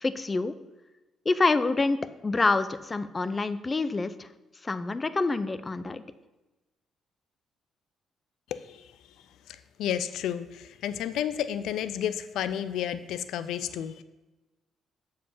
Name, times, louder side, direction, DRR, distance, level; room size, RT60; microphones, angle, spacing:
voice 1, 0.0-0.5 1.3-2.0 2.2-4.3 4.6-6.0, left 3 dB, 25° left, 13 dB, 0.5 m, -26 dB
voice 2, 9.5-14.0, left 10 dB, 80° left, 13 dB, 0.4 m, -31 dB
7.4 x 4.8 x 5.4 m, 1.1 s
cardioid pair, 90°, 0 cm